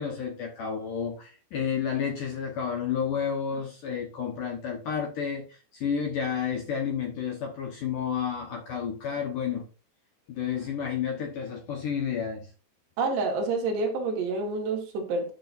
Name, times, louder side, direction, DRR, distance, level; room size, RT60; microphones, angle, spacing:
voice 1, 0.0-9.7 10.3-12.5, left 7 dB, 65° left, 2.3 m, -31 dB
voice 2, 13.0-15.3, right 3 dB, 70° right, 3.8 m, -28 dB
11.5 x 6.8 x 2.6 m
omnidirectional pair, 5.1 m